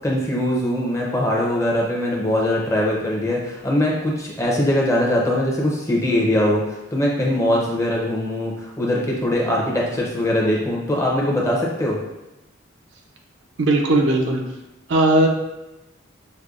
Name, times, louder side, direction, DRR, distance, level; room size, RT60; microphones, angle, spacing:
voice 1, 0.0-6.6 6.9-12.0, left 1 dB, 15° left, -3 dB, 0.6 m, -21 dB
voice 2, 13.6-14.4 14.9-15.3, right 1 dB, 60° right, 2 dB, 0.5 m, -17 dB
6.4 x 2.2 x 2.4 m, 0.97 s
head